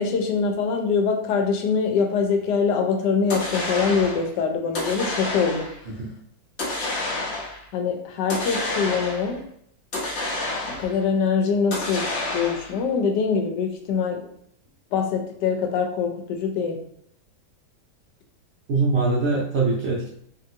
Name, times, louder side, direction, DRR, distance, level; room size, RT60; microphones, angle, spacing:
voice 1, 0.0-5.9 7.7-9.4 10.7-14.3 14.9-16.8, left 5 dB, 90° left, 5 dB, 1.2 m, -24 dB
sound 1, 3.3-4.3 4.7-5.8 6.6-7.6 8.3-9.4 9.9-11.0 11.7-12.8, left 2 dB, 50° left, 0.9 m, -29 dB
voice 2, 18.7-20.1, right 3 dB, 70° right, -6 dB, 0.6 m, -22 dB
2.8 x 2.7 x 2.5 m, 0.67 s
omnidirectional pair, 1.8 m